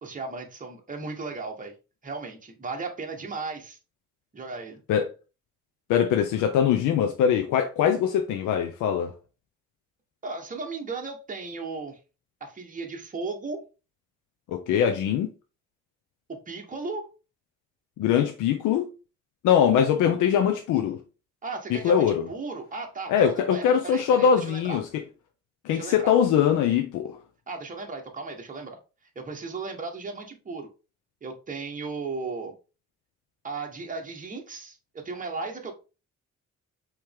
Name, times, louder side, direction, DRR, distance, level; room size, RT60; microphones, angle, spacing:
voice 1, 0.0-1.7 2.0-3.8 4.3-4.8 10.2-12.0 12.4-13.6 16.3-17.1 21.4-24.8 25.7-26.1 27.5-28.8 29.1-30.7 31.2-32.5 33.4-35.7, right 3 dB, 25° right, 1.2 m, -36 dB
voice 2, 5.9-9.1 14.5-15.3 18.0-18.9 19.4-21.0 21.7-22.3 23.1-24.9 25.6-27.2, left 8 dB, 85° left, 0.6 m, -22 dB
4.7 x 3.0 x 3.5 m
cardioid pair, 90°, 30 cm